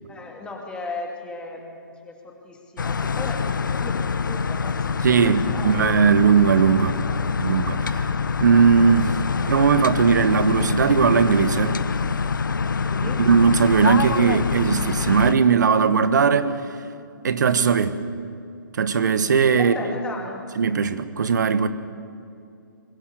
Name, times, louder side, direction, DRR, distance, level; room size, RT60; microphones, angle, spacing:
voice 1, 0.1-6.2 7.0-7.5 12.8-13.3 19.6-20.4, left 3 dB, 10° left, 1 dB, 2.5 m, -36 dB
sound 1, 2.8-15.3, left 5 dB, 70° left, 0.9 m, -25 dB
voice 2, 5.0-7.0 7.4-8.1 8.4-9.2 9.5-11.8 13.2-16.5 17.2-18.0 18.7-19.7 20.6-21.7, right 6 dB, 60° right, 12 dB, 1.3 m, -18 dB
23.0 x 16.0 x 8.1 m, 2.5 s
figure-of-eight pair, 130°, 11 cm